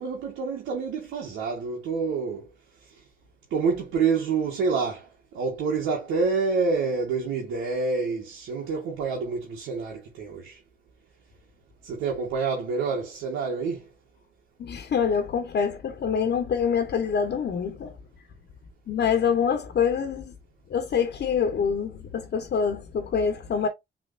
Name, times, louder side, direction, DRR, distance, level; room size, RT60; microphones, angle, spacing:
voice 1, 0.0-2.5 3.5-10.6 11.8-13.8, right 4 dB, 90° right, 1.5 m, -27 dB
voice 2, 14.6-18.0 18.9-20.4 20.7-23.7, left 6 dB, 55° left, 1.2 m, -25 dB
6.3 x 3.4 x 2.5 m
cardioid pair, 90°, 20 cm